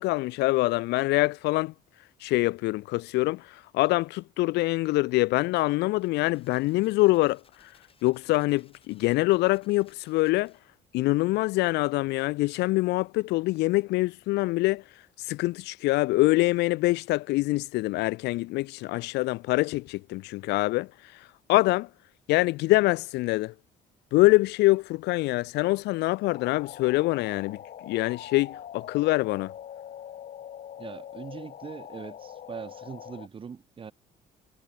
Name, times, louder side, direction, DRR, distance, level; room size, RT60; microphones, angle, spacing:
voice 1, 0.0-1.7 2.2-7.7 8.0-10.5 10.9-14.8 15.2-21.9 22.3-23.5 24.1-29.5, left 20 dB, 85° left, 0.8 m, -25 dB
sound 1, 5.9-10.8, left 6 dB, 35° left, 5.6 m, -63 dB
sound 2, 26.2-33.3, left 10 dB, 50° left, 2.0 m, -43 dB
voice 2, 30.8-33.9, right 6 dB, 30° right, 1.2 m, -41 dB
cardioid pair, 110°, 17 cm